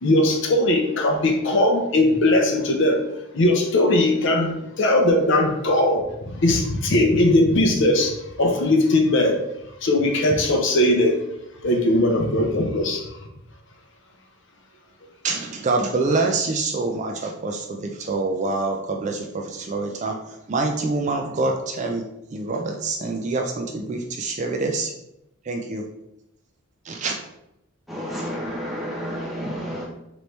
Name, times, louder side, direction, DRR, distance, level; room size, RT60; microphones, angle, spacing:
voice 1, 0.0-11.2 11.6-13.3, left 1 dB, 55° left, 3 dB, 0.6 m, -20 dB
voice 2, 15.2-22.0 22.3-24.9 25.4-25.9 26.8-27.2, right 3 dB, 35° right, 2 dB, 0.3 m, -26 dB
voice 3, 27.9-29.8, equal, ahead, -5 dB, 0.9 m, -30 dB
4.0 x 3.1 x 3.2 m, 0.85 s
head